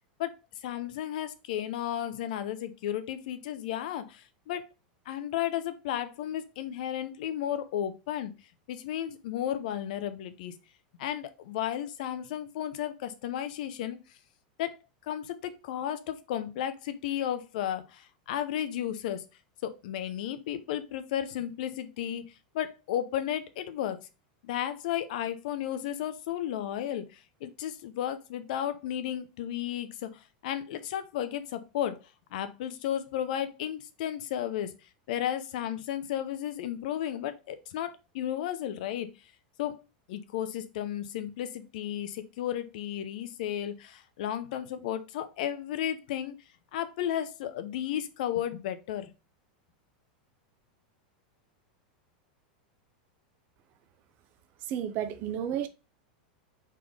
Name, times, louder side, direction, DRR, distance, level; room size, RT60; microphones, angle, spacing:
voice 1, 0.6-4.7 5.1-8.3 8.7-10.5 11.0-14.0 14.6-14.8 15.1-19.2 19.6-22.2 22.5-24.0 24.4-27.1 27.4-30.1 30.4-32.0 32.3-34.7 35.1-39.1 39.6-39.8 40.1-46.3 46.7-49.1, left 11 dB, 65° left, 0.6 m, -33 dB
voice 2, 54.7-55.7, right 9 dB, 45° right, 0.6 m, -31 dB
4.1 x 3.3 x 3.5 m
supercardioid pair, 140°, 5 cm